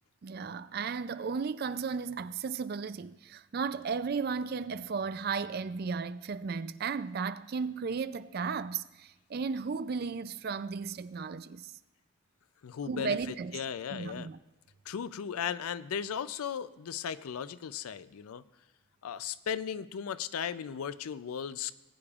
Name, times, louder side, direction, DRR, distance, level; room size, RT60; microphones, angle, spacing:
voice 1, 0.2-11.7 12.9-13.6 13.9-14.4, right 5 dB, 45° right, 0.3 m, -35 dB
voice 2, 12.6-13.2 13.5-14.3 14.9-18.4 19.0-21.7, left 8 dB, 90° left, 0.4 m, -36 dB
19.5 x 8.5 x 2.4 m
head